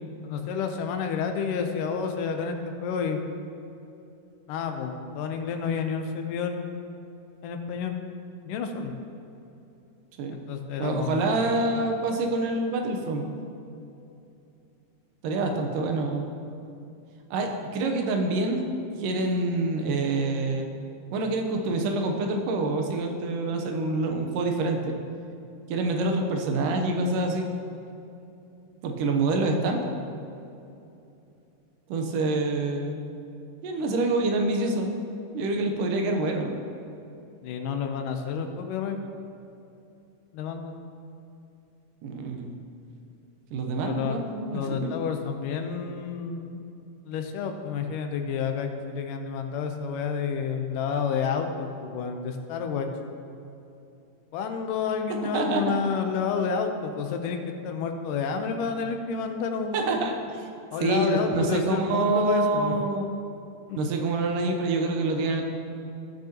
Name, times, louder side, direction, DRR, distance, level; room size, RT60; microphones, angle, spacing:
voice 1, 0.2-3.2 4.5-6.7 7.4-8.0 8.5-8.9 10.3-11.6 37.4-39.0 40.3-40.8 43.8-44.2 44.5-46.6 47.1-52.9 54.3-57.4 57.6-59.8 60.7-62.8 63.7-63.8, left 6 dB, 85° left, 5 dB, 2.4 m, -30 dB
voice 2, 10.8-13.2 15.2-16.3 17.3-18.7 19.0-20.7 21.1-24.9 25.7-27.5 28.8-29.9 31.9-33.0 33.6-34.9 35.3-36.6 42.0-42.6 43.5-44.8 55.3-55.7 59.7-60.4 60.8-63.1 63.7-65.4, right 2 dB, 85° right, 3 dB, 2.4 m, -26 dB
17.0 x 6.5 x 2.9 m, 2.7 s
omnidirectional pair, 3.7 m